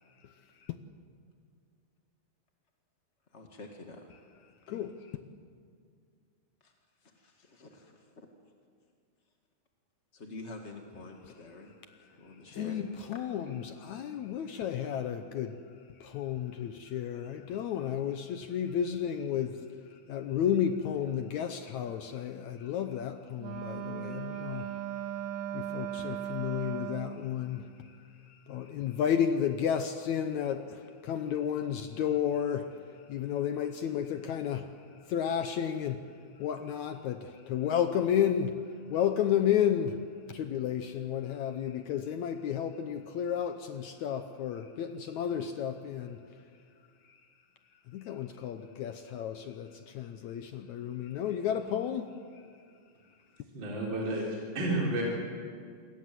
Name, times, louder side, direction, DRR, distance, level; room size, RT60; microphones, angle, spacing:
voice 1, 3.3-4.1 4.5-4.9 6.6-6.7 7.0-8.1 10.1-11.7 12.0-12.8, left 2 dB, 30° left, 1.3 m, -47 dB
voice 2, 4.7-5.1 12.5-15.6 16.0-25.1 25.5-36.1 36.4-38.6 38.9-46.2 47.1-47.2 47.9-52.4, left 9 dB, 70° left, 1.8 m, -32 dB
Wind instrument woodwind instrument, 23.4-27.3, right 11 dB, 60° right, 2.8 m, -37 dB
voice 3, 53.5-55.0, right 2 dB, 30° right, 4.5 m, -31 dB
28.0 x 22.0 x 7.7 m
omnidirectional pair, 4.1 m